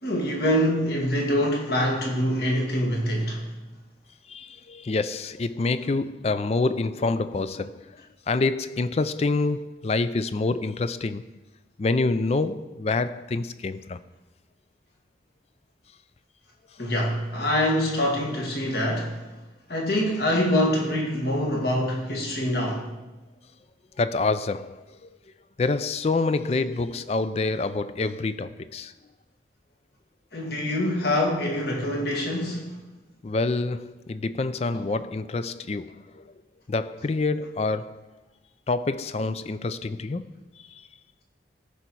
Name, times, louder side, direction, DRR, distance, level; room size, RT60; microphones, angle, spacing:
voice 1, 0.0-3.5 16.8-19.2 19.7-22.9 30.3-32.8 34.7-34.8, left 1 dB, 60° left, 2.0 m, -25 dB
voice 2, 4.3-7.9 8.3-11.2 11.8-14.0 24.0-25.1 25.6-28.9 33.2-36.3 36.7-38.0 38.7-40.2, left 3 dB, 35° left, 0.3 m, -27 dB
14.5 x 5.6 x 4.6 m
head